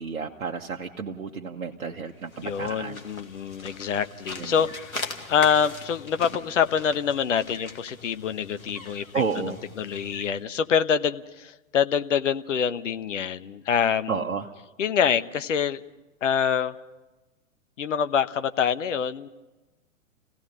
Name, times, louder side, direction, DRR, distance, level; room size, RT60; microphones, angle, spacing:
voice 1, 0.0-3.0 4.4-4.7 9.1-9.6 14.1-14.5, right 5 dB, 70° right, 1 dB, 1.4 m, -31 dB
sound 1, 2.1-10.4, left 2 dB, 80° left, 2.3 m, -41 dB
voice 2, 2.4-5.0 5.3-9.0 9.4-14.2 14.8-15.8 16.2-16.8 17.8-19.3, left 7 dB, 60° left, 12 dB, 1.1 m, -25 dB
27.5 x 17.0 x 5.5 m, 1.1 s
figure-of-eight pair, 110°, 41 cm